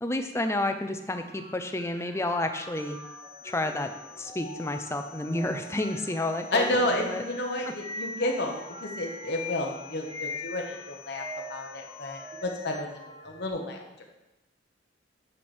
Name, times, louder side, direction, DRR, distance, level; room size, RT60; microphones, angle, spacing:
voice 1, 0.0-3.0 3.4-3.9 4.2-7.2 7.7-7.8, left 2 dB, 15° left, 6 dB, 0.5 m, -30 dB
sound 1, 1.1-13.5, left 2 dB, 25° right, 2.0 m, -43 dB
sound 2, 2.7-12.7, left 11 dB, 75° right, 1.8 m, -51 dB
voice 2, 6.5-11.2 11.5-12.9 13.2-14.0, left 1 dB, 60° left, 1 dB, 1.2 m, -31 dB
8.7 x 4.9 x 4.4 m, 0.98 s
head